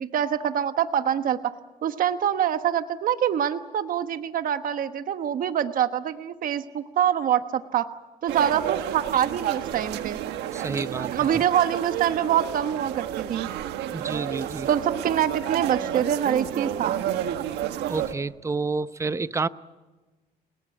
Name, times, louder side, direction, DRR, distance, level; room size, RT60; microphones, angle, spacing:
voice 1, 0.0-1.5 1.8-7.9 8.2-10.2 11.1-13.5 14.7-17.0, right 9 dB, 55° right, 9 dB, 1.2 m, -25 dB
sound 1, 8.3-18.1, right 11 dB, 85° right, 1.6 m, -31 dB
voice 2, 10.5-11.4 13.9-14.7 17.9-19.5, right 4 dB, 15° right, 14 dB, 0.7 m, -29 dB
29.5 x 18.5 x 8.6 m, 1.2 s
cardioid pair, 110°, 17 cm